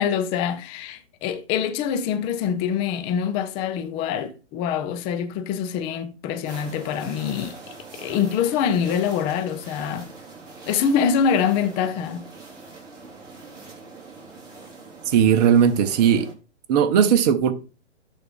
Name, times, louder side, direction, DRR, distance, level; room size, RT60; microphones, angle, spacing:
voice 1, 0.0-7.6 7.9-10.1 10.7-12.3, left 7 dB, 15° left, 0.5 m, -25 dB
sound 1, 6.5-16.3, right 3 dB, 10° right, 3.2 m, -43 dB
voice 2, 15.0-16.3 16.7-17.5, right 8 dB, 35° right, 1.2 m, -17 dB
11.5 x 4.2 x 4.7 m
figure-of-eight pair, 125°, 36 cm